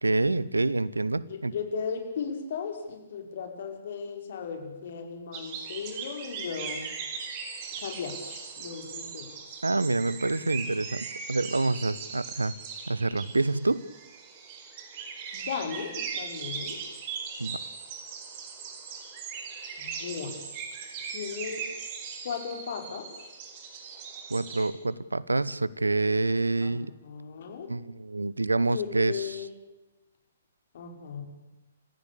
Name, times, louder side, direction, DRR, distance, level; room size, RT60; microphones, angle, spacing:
voice 1, 0.0-1.5 9.6-12.5 12.9-13.8 17.4-17.6 24.3-26.9 27.7-29.2, right 2 dB, 85° right, 20 dB, 1.0 m, -27 dB
voice 2, 1.2-6.9 7.8-9.6 15.3-16.8 19.8-20.4 21.1-21.7 22.2-23.1 26.6-27.7 28.7-29.5 30.7-31.2, left 6 dB, 55° left, 4 dB, 5.2 m, -36 dB
sound 1, 5.3-24.7, right 6 dB, 35° right, 4.6 m, -39 dB
29.0 x 15.5 x 8.6 m, 1.0 s
figure-of-eight pair, 125°, 0 cm